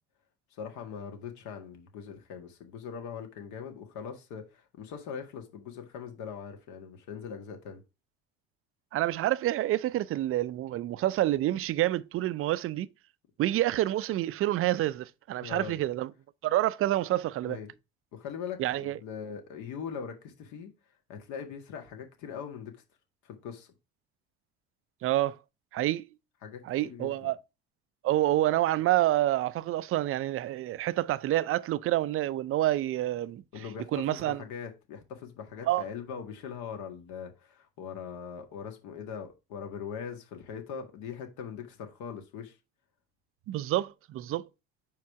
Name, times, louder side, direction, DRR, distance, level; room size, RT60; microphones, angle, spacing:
voice 1, 0.5-7.8 15.4-15.8 17.4-17.7 18.1-20.7 21.1-22.8 23.2-23.7 26.4-27.2 33.5-42.6, left 7 dB, 65° left, 1.9 m, -41 dB
voice 2, 8.9-12.9 13.4-16.1 16.4-17.6 18.6-19.0 25.0-25.4 25.7-26.1 26.6-27.4 28.0-33.4 33.9-34.4 35.6-35.9 43.5-44.5, right 14 dB, 45° right, 0.5 m, -28 dB
5.2 x 4.7 x 4.6 m
hypercardioid pair, 80°, 31 cm